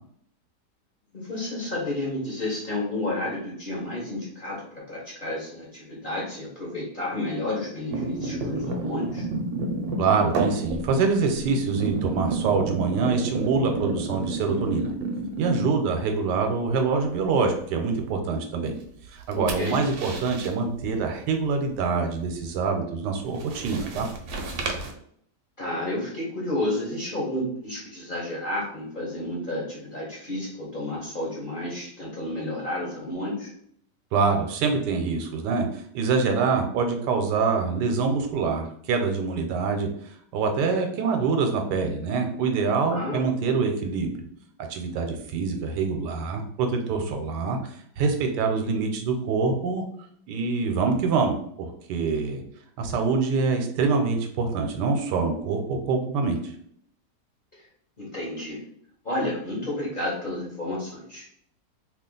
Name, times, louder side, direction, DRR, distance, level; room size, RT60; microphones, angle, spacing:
voice 1, 1.1-9.3 18.6-18.7 19.3-19.8 25.6-33.5 42.9-43.2 58.0-58.6 59.0-61.3, left 1 dB, 40° left, -5 dB, 0.7 m, -31 dB
sound 1, 7.9-16.0 16.4-16.7 19.0-20.5 23.2-24.9, right 3 dB, 70° right, 1.0 m, -31 dB
voice 2, 10.0-14.9 15.4-18.7 19.1-24.1 34.1-44.1 44.7-49.8 50.3-52.4 52.8-56.5, right 4 dB, 85° right, 4 dB, 1.2 m, -25 dB
2.8 x 2.4 x 3.7 m, 0.65 s
omnidirectional pair, 1.8 m